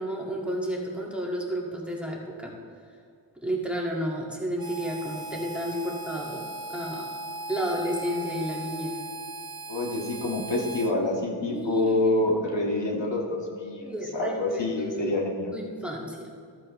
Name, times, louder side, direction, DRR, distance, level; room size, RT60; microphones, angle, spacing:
voice 1, 0.0-2.5 3.4-7.1 7.5-9.0 11.5-12.1 13.8-15.1 15.5-16.3, equal, ahead, -3 dB, 2.1 m, -32 dB
Harmonica, 4.6-10.9, right 1 dB, 50° right, 0.8 m, -38 dB
voice 2, 9.7-13.9 14.1-15.5, left 2 dB, 65° left, -1 dB, 2.0 m, -27 dB
14.0 x 14.0 x 3.2 m, 2.3 s
wide cardioid pair, 90°, 47 cm